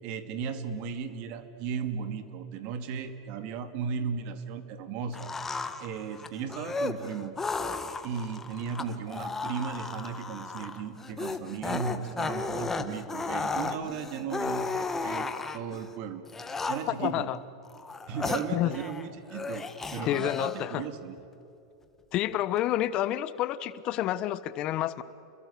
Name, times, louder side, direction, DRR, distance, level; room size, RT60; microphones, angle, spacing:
voice 1, 0.0-5.3 5.8-7.4 8.0-15.3 15.5-16.2 16.7-17.3 18.1-21.2, right 6 dB, 55° right, 9 dB, 2.5 m, -36 dB
sound 1, 5.1-15.8 16.3-17.1 17.6-19.0 19.3-20.8, left 4 dB, 15° left, 1.7 m, -34 dB
voice 2, 17.0-17.4 18.5-18.8 20.0-20.8 22.1-25.0, left 13 dB, 45° left, 15 dB, 1.1 m, -29 dB
29.5 x 22.0 x 8.4 m, 2.8 s
hypercardioid pair, 105°, 2 cm